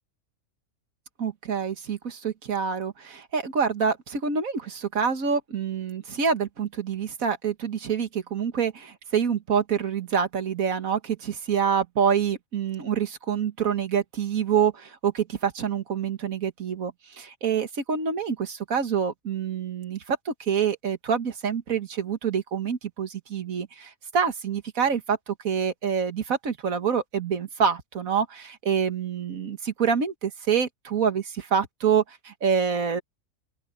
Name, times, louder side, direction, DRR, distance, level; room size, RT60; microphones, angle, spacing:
voice 1, 1.2-33.0, right 7 dB, 75° right, 2.0 m, -26 dB
open air
omnidirectional pair, 1.5 m